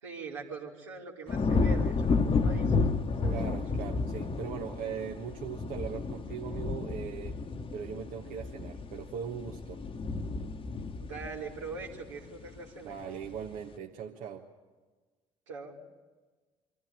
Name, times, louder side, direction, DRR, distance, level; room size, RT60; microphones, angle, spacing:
voice 1, 0.0-2.8 3.2-3.6 11.0-13.0 15.5-15.8, right 4 dB, 85° right, -2 dB, 2.8 m, -42 dB
sound 1, 1.3-12.6 13.0-13.5, left 4 dB, 35° left, 1.3 m, -31 dB
voice 2, 3.3-7.4 7.7-9.8 12.8-14.4, right 7 dB, 60° right, 1 dB, 1.3 m, -39 dB
25.0 x 14.5 x 9.3 m, 1.4 s
hypercardioid pair, 55°, 16 cm